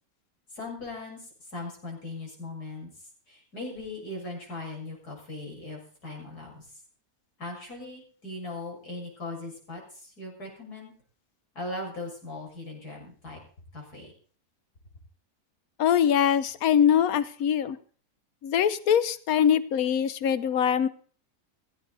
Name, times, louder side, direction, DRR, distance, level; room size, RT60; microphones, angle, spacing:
voice 1, 0.5-6.7 7.4-10.9 11.6-13.4 13.7-14.1, left 2 dB, 85° left, -1 dB, 7.2 m, -39 dB
voice 2, 15.8-17.8 18.4-20.9, left 9 dB, 70° left, 15 dB, 1.4 m, -23 dB
16.5 x 16.0 x 4.1 m, 0.43 s
omnidirectional pair, 1.6 m